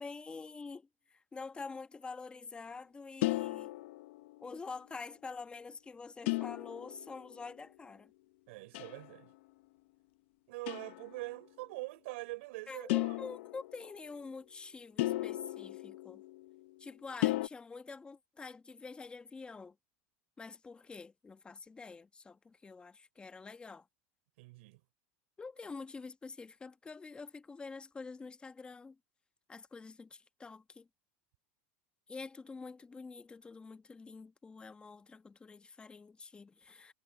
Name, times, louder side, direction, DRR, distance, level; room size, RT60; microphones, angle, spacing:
voice 1, 0.0-3.8 4.4-8.1 12.7-16.2 16.8-19.8 20.4-23.9 25.4-29.0 29.5-30.9 32.1-36.9, left 4 dB, 15° left, 1.2 m, -47 dB
sound 1, 3.2-4.5 6.3-7.4 8.7-9.2 10.7-11.1 12.9-14.0 15.0-16.6 17.2-17.5, left 19 dB, 70° left, 0.9 m, -35 dB
voice 2, 8.5-9.3 10.5-13.2 24.4-24.8, right 22 dB, 70° right, 3.8 m, -44 dB
supercardioid pair, 125°, 7 cm